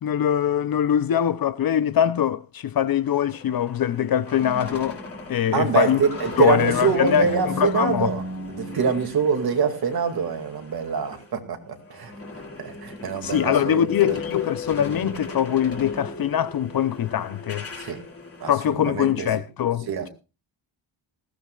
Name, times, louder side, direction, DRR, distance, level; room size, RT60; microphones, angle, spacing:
voice 1, 0.0-5.0 5.3-6.0 6.4-8.1 13.2-17.7 18.5-20.1, left 9 dB, 50° left, 0.6 m, -22 dB
sound 1, 2.9-11.3 11.6-18.5, left 2 dB, 30° left, 2.9 m, -36 dB
voice 2, 5.5-8.2 8.5-12.1 12.6-14.1 17.8-18.0 18.4-19.3 19.9-20.1, right 6 dB, 50° right, 2.3 m, -25 dB
20.0 x 15.5 x 2.4 m
wide cardioid pair, 160°, 46 cm